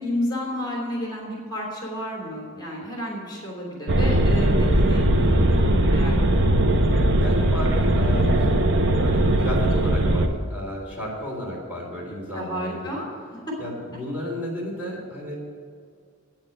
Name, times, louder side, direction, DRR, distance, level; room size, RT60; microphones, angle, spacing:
voice 1, 0.0-6.5 12.3-13.1, equal, 20° left, -2 dB, 3.2 m, -31 dB
sound 1, 3.9-10.3, right 1 dB, 60° right, 0.9 m, -19 dB
voice 2, 7.1-8.5 8.9-13.0 13.6-15.3, equal, 10° right, -4 dB, 3.5 m, -33 dB
9.4 x 8.7 x 9.4 m, 2.2 s
head